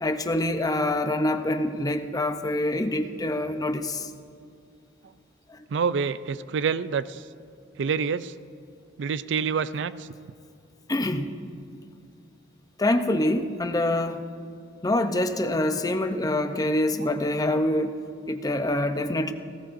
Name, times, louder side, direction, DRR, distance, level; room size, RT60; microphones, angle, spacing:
voice 1, 0.0-4.1 5.5-5.6 10.9-11.4 12.8-14.2 14.8-18.0 18.3-19.3, left 1 dB, 20° left, 7 dB, 0.6 m, -25 dB
voice 2, 5.7-7.2 7.8-8.3 9.0-10.1, right 6 dB, 70° right, 15 dB, 0.4 m, -27 dB
18.0 x 17.0 x 2.6 m, 2.3 s
head